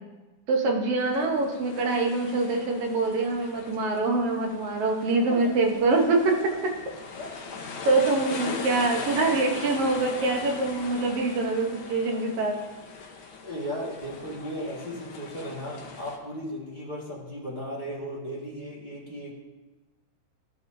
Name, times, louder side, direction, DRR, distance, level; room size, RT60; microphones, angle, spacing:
voice 1, 0.5-6.4 7.8-12.6, right 3 dB, 65° right, 2 dB, 1.6 m, -24 dB
sound 1, 1.0-16.2, left 4 dB, 75° left, 1.2 m, -40 dB
voice 2, 13.4-19.4, equal, 30° left, -6 dB, 0.8 m, -36 dB
12.5 x 6.0 x 2.6 m, 1.1 s
omnidirectional pair, 3.5 m